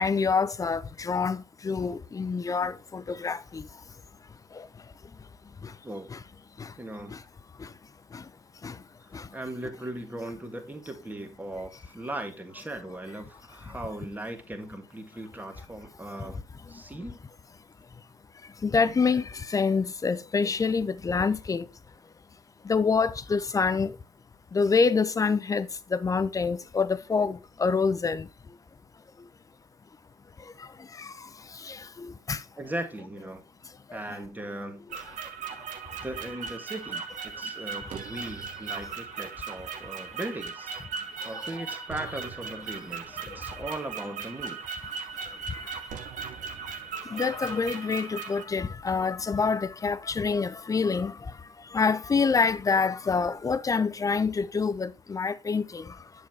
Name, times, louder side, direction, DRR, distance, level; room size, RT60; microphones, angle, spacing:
voice 1, 0.0-3.6 4.5-4.7 5.6-5.7 6.1-6.2 6.6-6.7 7.1-7.2 7.6-7.7 8.1-8.2 8.6-8.7 9.1-9.3 18.6-21.7 22.6-23.9 24.5-28.3 31.0-31.1 31.6-32.4 41.3-41.4 41.6-41.7 45.5-45.6 47.1-51.2 51.7-55.9, left 5 dB, 20° left, 0.6 m, -27 dB
voice 2, 6.8-7.1 9.3-16.4 16.7-17.2 32.6-33.4 33.9-34.9 36.0-40.7 41.2-44.7, right 1 dB, 10° right, 1.7 m, -38 dB
sound 1, 34.9-48.4, right 6 dB, 55° right, 1.3 m, -38 dB
7.5 x 6.9 x 2.8 m
hypercardioid pair, 70°, 16 cm